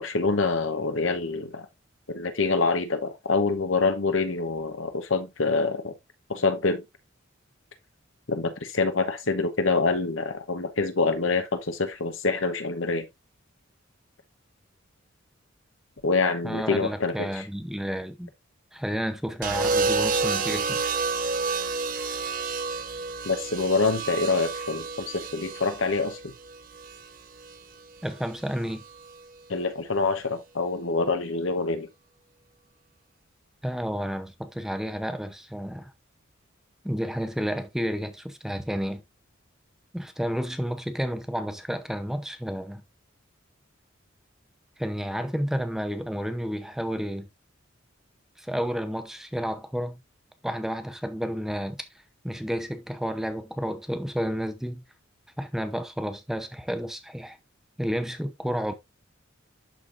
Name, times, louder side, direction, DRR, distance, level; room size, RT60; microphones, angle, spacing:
voice 1, 0.0-1.7 2.1-5.9 6.3-6.8 8.3-13.1 16.0-17.4 23.2-26.3 29.5-31.9, left 3 dB, 75° left, 1.1 m, -26 dB
voice 2, 16.4-18.3 18.7-20.8 28.0-28.8 33.6-35.9 36.8-39.0 39.9-42.8 44.8-47.3 48.4-50.0 50.4-51.9 52.2-54.8 55.4-57.4 57.8-58.7, equal, ahead, 0.7 m, -31 dB
sound 1, 19.4-27.6 28.8-29.2, right 4 dB, 45° right, 0.8 m, -29 dB
11.5 x 4.0 x 2.6 m
head